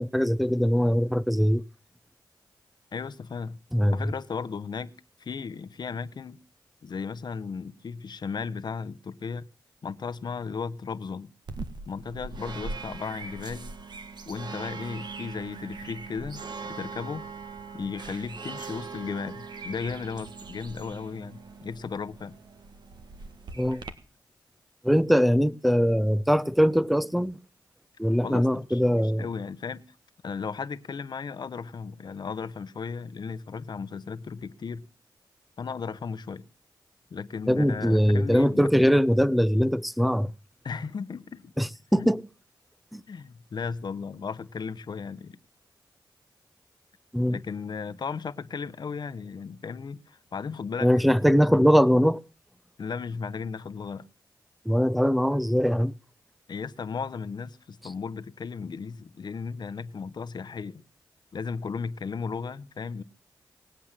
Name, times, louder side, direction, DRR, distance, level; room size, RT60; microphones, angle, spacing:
voice 1, 0.0-1.6 3.7-4.0 23.6-23.8 24.8-27.4 28.0-29.3 37.5-40.3 41.6-42.2 42.9-43.0 47.1-47.4 50.8-52.2 54.6-55.9, equal, ahead, 0.7 m, -22 dB
voice 2, 2.9-3.6 3.9-4.9 5.2-6.4 6.8-9.5 9.8-11.3 11.9-13.7 14.3-17.3 17.7-22.4 28.2-29.8 30.2-34.8 35.6-36.4 37.1-38.9 40.6-41.5 42.0-42.1 43.1-45.4 47.3-50.9 52.8-54.1 56.5-60.8 61.3-63.0, left 5 dB, 65° left, 1.0 m, -35 dB
sound 1, 11.5-23.9, right 4 dB, 65° right, 1.6 m, -41 dB
19.5 x 8.2 x 7.5 m
cardioid pair, 60°, 8 cm